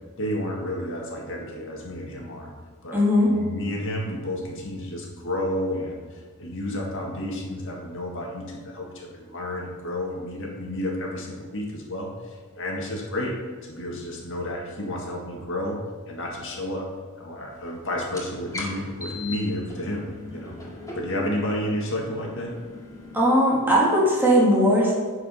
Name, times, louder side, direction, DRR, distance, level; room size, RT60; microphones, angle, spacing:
voice 1, 0.2-2.5 2.8-3.0 3.3-13.3 13.6-15.8 16.1-16.9 17.2-20.6 20.9-22.6, left 1 dB, 60° left, -1 dB, 1.8 m, -31 dB
voice 2, 2.9-3.3 23.1-24.9, equal, 10° right, -6 dB, 2.3 m, -19 dB
sound 1, 18.1-23.2, left 2 dB, 15° left, 2.0 m, -39 dB
11.0 x 4.9 x 5.5 m, 1.5 s
head